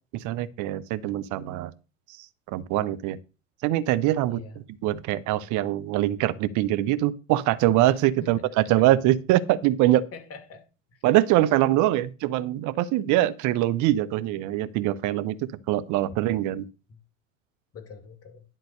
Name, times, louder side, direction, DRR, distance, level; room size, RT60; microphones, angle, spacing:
voice 1, 0.1-1.7 2.2-3.2 3.6-4.4 4.8-10.0 11.0-16.7, right 14 dB, 45° right, 0.9 m, -23 dB
voice 2, 8.2-8.9 10.1-10.6 10.9-11.0 11.8-12.0 17.7-18.4, left 4 dB, 35° left, 2.3 m, -43 dB
11.0 x 3.9 x 6.6 m
hypercardioid pair, 80°, 40 cm